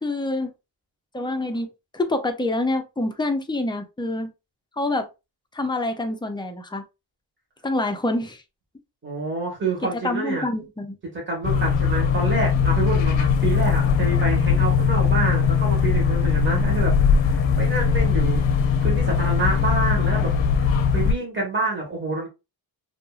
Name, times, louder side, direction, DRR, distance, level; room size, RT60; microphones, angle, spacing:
voice 1, 0.0-0.5 1.1-1.7 1.9-4.3 4.8-5.1 5.5-6.8 7.6-8.4 10.0-11.0, left 2 dB, 10° left, 0.4 m, -26 dB
voice 2, 9.0-10.5 11.1-18.4 18.8-20.3 20.6-22.3, right 3 dB, 25° right, 1.4 m, -28 dB
sound 1, 11.4-21.2, left 6 dB, 75° left, 0.5 m, -20 dB
2.8 x 2.6 x 2.3 m
wide cardioid pair, 100°, 46 cm